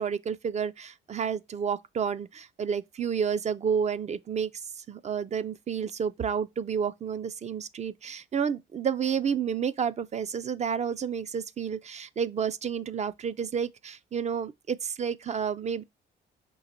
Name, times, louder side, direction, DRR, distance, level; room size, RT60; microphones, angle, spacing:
voice 1, 0.0-4.5 4.8-15.8, right 7 dB, 35° right, 0.4 m, -30 dB
3.9 x 3.0 x 4.2 m
cardioid pair, 90°, 20 cm